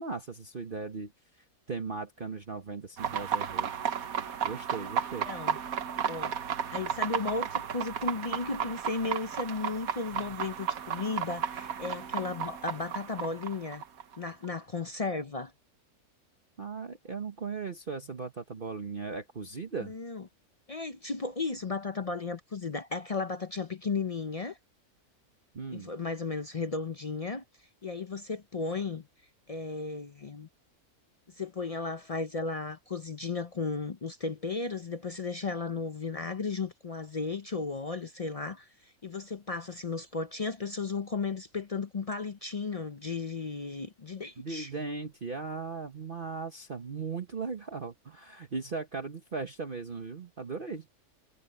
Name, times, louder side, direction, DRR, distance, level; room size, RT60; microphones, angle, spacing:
voice 1, 0.0-3.9 4.4-5.4 16.6-19.9 25.5-25.9 44.4-50.9, right 4 dB, 40° right, 1.3 m, -38 dB
sound 1, 3.0-14.5, right 8 dB, 70° right, 1.5 m, -34 dB
voice 2, 5.2-5.6 6.1-6.4 6.7-13.8 14.2-15.5 19.8-20.2 20.7-24.6 25.7-27.4 27.8-29.1 29.5-30.5 31.4-44.7, left 4 dB, 50° left, 0.4 m, -35 dB
omnidirectional pair, 1.6 m